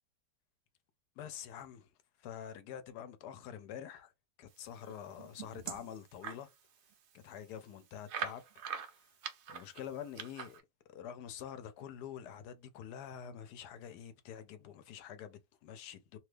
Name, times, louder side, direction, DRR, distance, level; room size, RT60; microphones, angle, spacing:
voice 1, 1.2-1.9 2.2-4.1 4.4-6.5 7.1-8.4 8.9-9.1 9.5-10.6 10.9-16.2, left 9 dB, 80° left, 1.1 m, -46 dB
sound 1, 4.9-6.4 6.9-7.0 7.3-7.4 8.1-10.6, right 7 dB, 65° right, 0.7 m, -43 dB
3.0 x 2.3 x 3.2 m
omnidirectional pair, 1.7 m